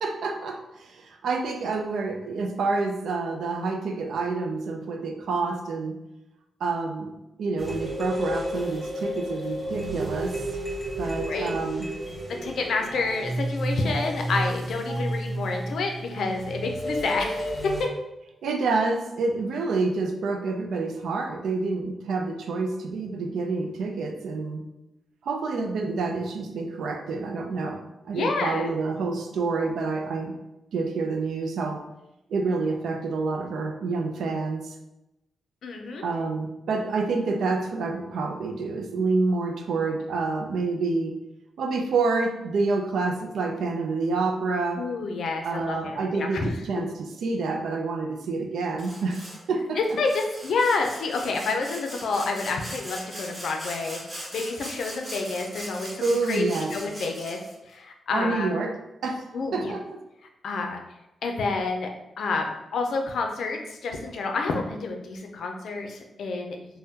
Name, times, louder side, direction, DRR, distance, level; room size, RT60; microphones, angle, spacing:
voice 1, 0.0-6.0 6.6-7.1 7.4-10.4 11.0-11.9 18.4-24.6 25.2-30.3 30.7-31.8 32.3-34.7 36.0-41.2 41.6-44.8 45.4-49.8 56.0-56.7 58.1-59.2 59.5-60.0, right 3 dB, 85° right, 4 dB, 0.4 m, -28 dB
sound 1, 7.6-17.8, right 1 dB, 5° left, 1.3 m, -31 dB
voice 2, 12.3-17.9 28.1-28.7 35.6-36.0 44.8-46.5 49.8-56.4 56.7-57.4 57.7-58.5 59.3-59.7 60.4-60.8 61.2-61.9 62.2-66.8, left 3 dB, 80° left, 3 dB, 0.4 m, -29 dB
Sawing, 48.8-49.4 49.8-57.5, equal, 25° right, 1.4 m, -40 dB
3.5 x 2.1 x 2.8 m, 0.93 s
cardioid pair, 90°, 0 cm